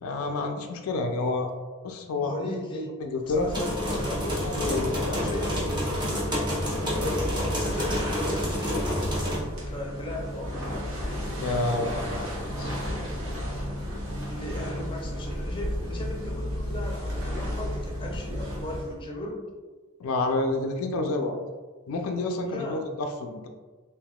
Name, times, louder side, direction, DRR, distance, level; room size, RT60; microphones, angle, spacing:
voice 1, 0.0-1.5 1.8-2.3 3.0-3.5 4.4-5.2 11.4-12.3 12.6-12.7 20.0-21.4 21.9-23.5, left 2 dB, 90° left, 4 dB, 0.4 m, -29 dB
voice 2, 2.2-2.9 3.2-5.6 6.7-9.0 9.7-10.9 14.3-19.4 22.4-22.8, left 1 dB, 25° left, 0 dB, 0.5 m, -37 dB
sound 1, 3.2-19.0, equal, 80° right, 0.9 m, -33 dB
sound 2, 3.5-9.4, equal, 20° right, 0.8 m, -29 dB
3.4 x 2.8 x 2.3 m, 1.4 s
head